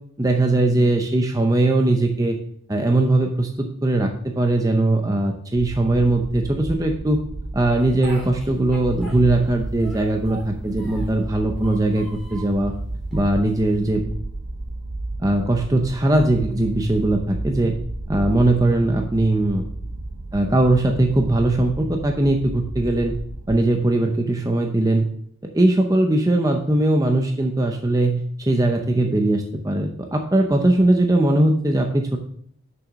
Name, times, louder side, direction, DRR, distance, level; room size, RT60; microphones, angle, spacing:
voice 1, 0.2-2.4 2.7-7.2 7.5-12.7 13.1-14.0 15.2-17.7 18.1-19.6 20.3-23.1 23.5-25.1 25.5-32.2, right 2 dB, 20° right, 3 dB, 0.6 m, -20 dB
sound 1, 5.6-23.6, right 2 dB, 70° right, 0.7 m, -33 dB
Speech, 7.8-9.5 9.8-11.2 11.6-12.6 13.1-13.9, right 2 dB, ahead, 3.3 m, -42 dB
6.3 x 6.0 x 6.2 m, 0.64 s
head